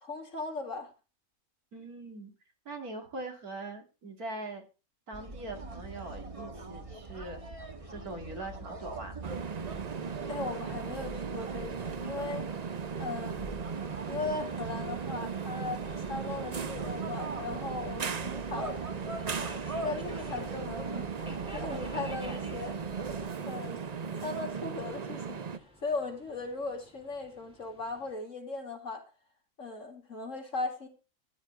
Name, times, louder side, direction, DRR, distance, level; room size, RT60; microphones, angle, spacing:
voice 1, 0.0-0.9 10.3-12.5 13.0-13.6 14.1-18.8 19.8-21.1 21.5-22.8 23.4-23.8 24.2-25.4 25.8-29.1 29.6-30.9, left 3 dB, 60° left, 2.8 m, -38 dB
voice 2, 1.7-2.3 2.7-4.6 5.1-7.4 7.9-9.4, right 2 dB, 85° right, 2.8 m, -42 dB
sound 1, 5.1-23.3, right 2 dB, 25° right, 1.3 m, -43 dB
sound 2, 9.2-25.6, right 6 dB, 45° right, 0.5 m, -37 dB
Subway metro underground, 15.3-28.1, equal, 5° right, 2.1 m, -52 dB
14.5 x 10.5 x 3.3 m
omnidirectional pair, 1.5 m